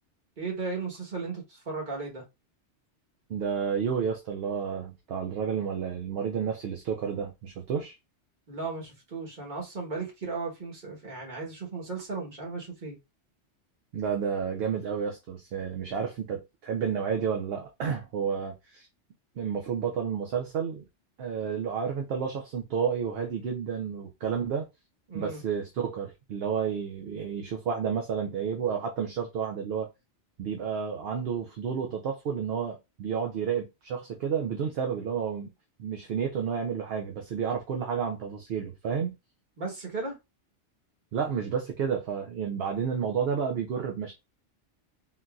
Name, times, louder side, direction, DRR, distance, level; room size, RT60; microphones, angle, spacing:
voice 1, 0.4-2.2 8.5-13.0 25.1-25.4 39.6-40.2, right 4 dB, 45° right, 1.3 m, -35 dB
voice 2, 3.3-8.0 13.9-18.9 19.4-20.8 21.2-24.7 25.1-29.9 30.4-35.5 35.8-39.1 41.1-44.1, right 7 dB, 65° right, 0.7 m, -31 dB
3.8 x 2.6 x 2.3 m
omnidirectional pair, 1.2 m